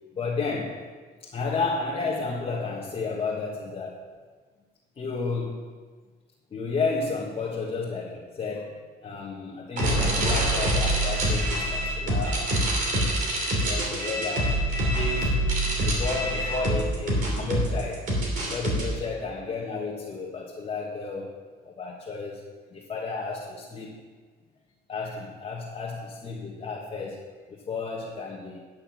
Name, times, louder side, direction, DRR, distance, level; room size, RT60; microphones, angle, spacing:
voice 1, 0.1-0.8 1.2-4.1 4.9-5.7 6.5-12.7 13.3-14.6 14.9-15.4 15.8-18.1 18.5-21.3 21.6-22.4 22.7-24.0 24.9-27.2 27.5-28.6, left 4 dB, 35° left, -4 dB, 1.5 m, -32 dB
sound 1, 9.8-18.8, right 1 dB, 55° right, 3.0 m, -25 dB
10.5 x 6.4 x 6.1 m, 1.5 s
cardioid pair, 110°, 17 cm